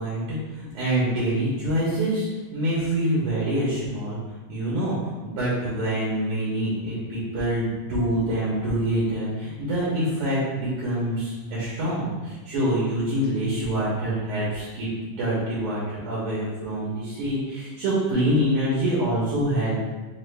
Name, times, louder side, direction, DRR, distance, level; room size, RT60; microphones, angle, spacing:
voice 1, 0.0-2.3 2.5-4.2 4.5-19.8, right 1 dB, 65° right, -8 dB, 1.5 m, -26 dB
4.9 x 2.5 x 3.3 m, 1.2 s
omnidirectional pair, 3.5 m